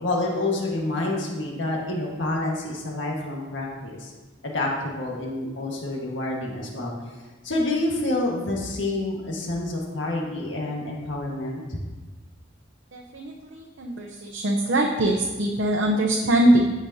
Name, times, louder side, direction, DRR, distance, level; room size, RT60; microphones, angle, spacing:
voice 1, 0.0-4.1 4.4-6.9 7.4-11.8, left 2 dB, 75° left, -2 dB, 1.6 m, -28 dB
voice 2, 12.9-16.7, right 1 dB, 70° right, 1 dB, 0.8 m, -22 dB
15.0 x 5.1 x 2.8 m, 1.2 s
head